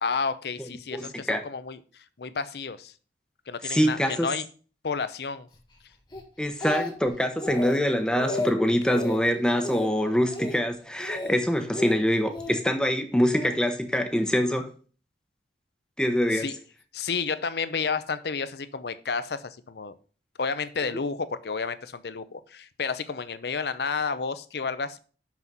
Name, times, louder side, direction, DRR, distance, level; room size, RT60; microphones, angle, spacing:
voice 1, 0.0-2.9 3.5-4.5 4.8-5.5 16.3-16.6 16.9-19.9 20.4-25.0, left 5 dB, 65° left, 0.6 m, -31 dB
voice 2, 0.9-1.4 3.6-4.3 6.4-14.7 16.0-16.5, equal, 5° left, 0.8 m, -24 dB
Speech, 6.1-7.1 7.4-7.8 8.1-8.5 8.9-9.2 9.6-9.9 10.3-10.6 11.0-11.3 11.7-12.6 13.3-13.6, left 1 dB, 25° left, 1.4 m, -33 dB
6.0 x 6.0 x 5.4 m
head